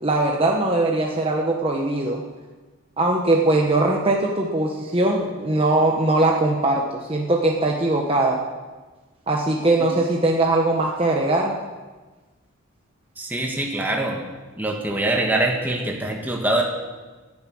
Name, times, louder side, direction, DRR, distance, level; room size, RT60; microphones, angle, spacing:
voice 1, 0.0-2.2 3.0-8.4 9.3-11.5, right 2 dB, 25° right, -1 dB, 1.2 m, -21 dB
voice 2, 13.2-14.2 14.6-16.6, right 2 dB, 10° right, 0 dB, 1.6 m, -24 dB
18.0 x 11.0 x 6.3 m, 1.3 s
head